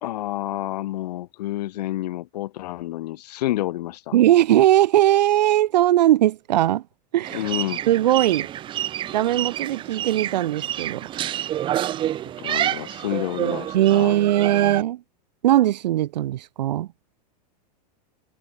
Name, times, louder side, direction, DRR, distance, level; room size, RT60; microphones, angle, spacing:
voice 1, 0.0-4.2 7.3-7.8 12.4-14.2, left 15 dB, 75° left, 3.3 m, -29 dB
voice 2, 4.1-6.8 7.1-7.4 7.9-8.5 9.1-11.1 13.7-15.0 15.4-16.9, right 13 dB, 85° right, 1.1 m, -19 dB
sound 1, 7.2-14.8, right 12 dB, 25° right, 0.7 m, -28 dB
supercardioid pair, 145°, 21 cm